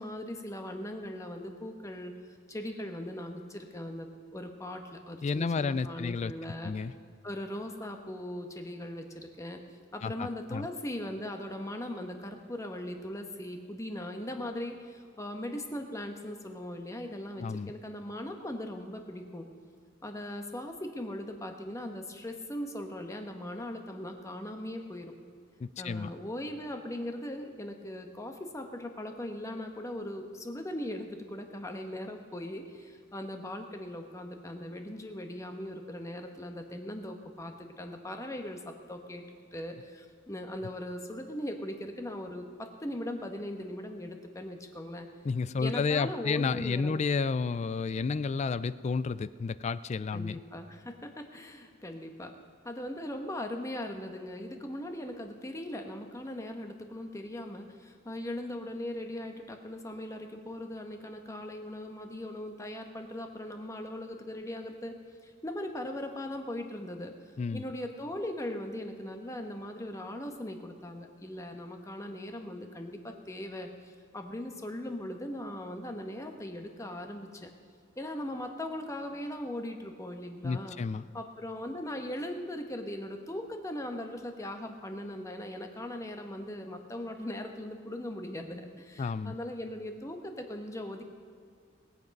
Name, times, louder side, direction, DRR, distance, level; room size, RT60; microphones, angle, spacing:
voice 1, 0.0-6.7 7.2-9.6 9.9-19.5 20.0-25.1 25.8-39.2 39.5-45.1 45.5-47.0 50.1-52.3 52.6-65.0 65.2-77.5 78.0-80.8 81.1-91.0, left 1 dB, 15° left, 4 dB, 1.0 m, -39 dB
voice 2, 5.2-6.3 6.6-6.9 10.0-10.7 17.4-17.7 25.6-26.1 45.2-50.4 67.4-67.6 80.4-81.0 89.0-89.3, left 4 dB, 35° left, 16 dB, 0.3 m, -31 dB
20.5 x 8.0 x 5.3 m, 2.2 s
head